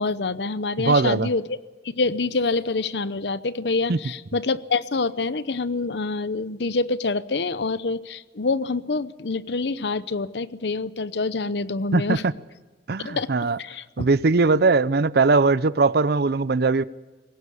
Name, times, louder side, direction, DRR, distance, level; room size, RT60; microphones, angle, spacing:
voice 1, 0.0-1.5 1.8-12.2 13.0-13.3 13.6-14.1, left 3 dB, 70° left, 0.8 m, -26 dB
voice 2, 0.8-1.3 3.9-4.0 11.9-12.2 12.9-13.6 14.0-16.8, right 3 dB, 60° right, 0.6 m, -20 dB
20.5 x 17.5 x 8.4 m
head